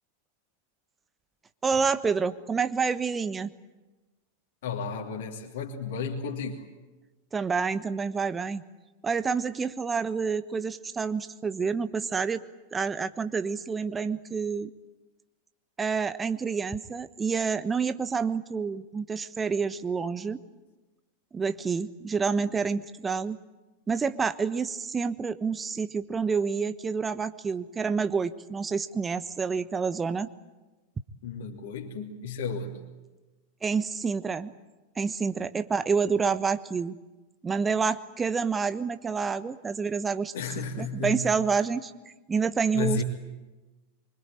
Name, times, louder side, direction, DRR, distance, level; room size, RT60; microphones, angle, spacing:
voice 1, 1.6-3.5 7.3-8.6 9.0-12.4 12.7-14.7 15.8-20.4 21.3-23.4 23.9-30.3 33.6-34.5 35.0-36.9 37.4-40.3 40.8-41.9 42.3-43.0, right 5 dB, 15° right, 12 dB, 1.2 m, -28 dB
voice 2, 4.6-6.6 31.2-32.8 40.3-41.3 42.7-43.0, left 5 dB, 55° left, 0 dB, 2.9 m, -33 dB
25.0 x 24.5 x 9.1 m, 1.2 s
figure-of-eight pair, 90°, 0 cm